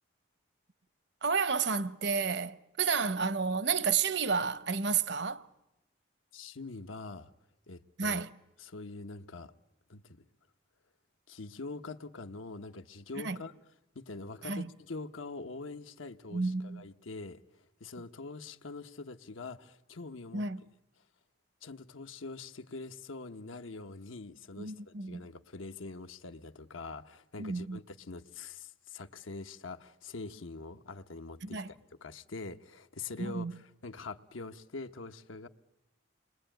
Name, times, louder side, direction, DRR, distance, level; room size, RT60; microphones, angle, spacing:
voice 1, 1.2-5.5 8.0-8.3 13.2-13.4 14.4-14.7 16.3-16.9 20.3-20.6 24.6-25.2 27.4-27.8 31.4-31.7 33.2-33.5, right 5 dB, 60° right, 0.9 m, -31 dB
voice 2, 6.3-7.3 7.7-8.2 8.6-9.5 9.9-10.0 11.3-13.5 13.9-17.4 17.8-20.4 21.6-31.7 32.0-35.5, left 3 dB, 90° left, 1.0 m, -44 dB
29.0 x 22.0 x 9.1 m
head